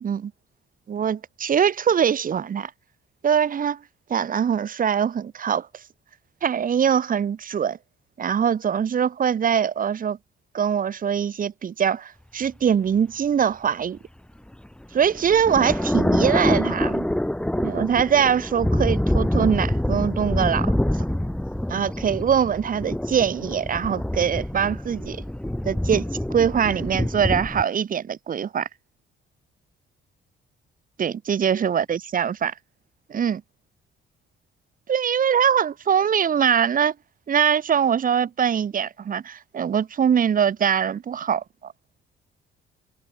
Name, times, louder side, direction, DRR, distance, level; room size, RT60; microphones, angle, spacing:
voice 1, 0.0-0.3 0.9-2.7 3.2-3.8 4.1-5.7 6.4-7.8 8.2-10.2 10.5-14.0 14.9-17.1 17.6-20.7 21.7-25.2 25.6-28.7 31.0-32.5 33.1-33.4 34.9-36.9 37.3-41.7, right 8 dB, 45° right, 1.1 m, -23 dB
sound 1, 14.5-27.6, left 1 dB, 5° left, 1.8 m, -26 dB
cardioid pair, 90°, 20 cm